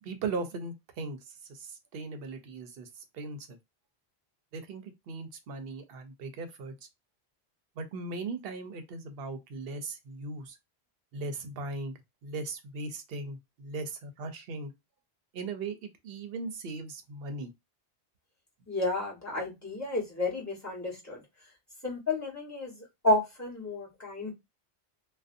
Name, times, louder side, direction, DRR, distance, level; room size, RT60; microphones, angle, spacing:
voice 1, 0.0-3.6 4.5-6.9 7.8-10.5 11.1-14.7 15.3-17.5, right 3 dB, 65° right, 0.7 m, -38 dB
voice 2, 18.7-21.2 21.8-22.7 23.0-24.3, left 2 dB, 15° left, 1.0 m, -31 dB
2.5 x 2.2 x 2.5 m
omnidirectional pair, 1.1 m